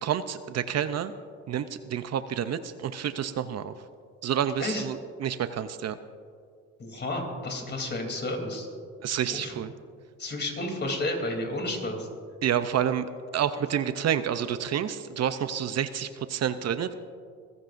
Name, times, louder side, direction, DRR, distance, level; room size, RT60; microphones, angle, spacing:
voice 1, 0.0-1.1 1.5-3.7 4.2-6.0 9.0-9.7 12.4-13.1 13.3-16.9, right 9 dB, 60° right, 11 dB, 0.7 m, -29 dB
voice 2, 6.8-8.7 9.3-9.5 10.2-12.1, left 1 dB, 35° left, 3 dB, 3.3 m, -31 dB
24.5 x 15.0 x 2.6 m, 2.1 s
cardioid pair, 90°, 30 cm